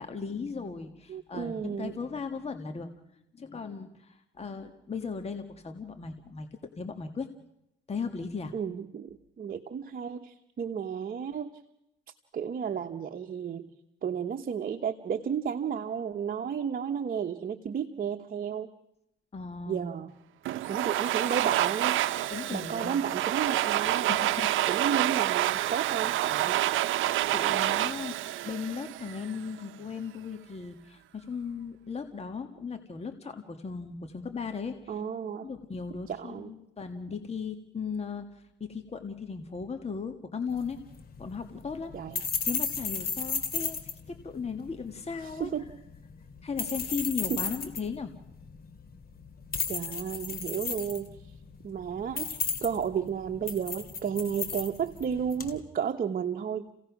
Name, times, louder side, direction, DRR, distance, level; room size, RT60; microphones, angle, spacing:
voice 1, 0.0-2.9 3.3-6.5 6.8-7.3 7.9-8.5 19.3-19.8 22.3-23.0 24.1-24.8 27.3-28.2 28.4-35.0 35.4-40.8 41.2-41.9 42.4-45.5 46.4-48.1, left 5 dB, 30° left, 6 dB, 1.6 m, -37 dB
voice 2, 1.1-1.9 8.5-11.5 12.3-13.7 14.0-18.7 19.7-20.1 20.7-22.0 22.5-24.1 24.7-26.6 34.9-35.5 36.1-36.5 41.9-42.2 45.4-45.6 47.3-47.4 49.7-51.1 51.6-56.8, right 7 dB, 45° right, 5 dB, 1.1 m, -32 dB
Domestic sounds home sounds, 20.4-29.4, right 14 dB, 80° right, 0.7 m, -28 dB
sound 1, 40.5-55.6, left 6 dB, 50° left, 2.4 m, -36 dB
29.5 x 17.0 x 6.0 m, 0.86 s
cardioid pair, 90°, 20 cm